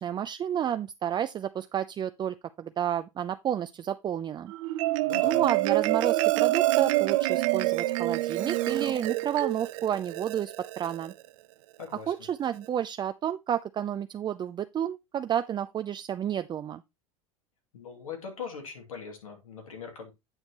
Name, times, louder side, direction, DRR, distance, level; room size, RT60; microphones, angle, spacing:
voice 1, 0.0-4.5 5.2-11.1 12.1-16.8, right 9 dB, 25° right, 0.4 m, -31 dB
Marimba xylophone, 4.5-11.1, right 18 dB, 65° right, 0.6 m, -27 dB
voice 2, 5.0-5.5 11.8-12.1 17.7-20.1, left 6 dB, 90° left, 2.6 m, -41 dB
8.9 x 6.4 x 3.0 m
hypercardioid pair, 95°, 17 cm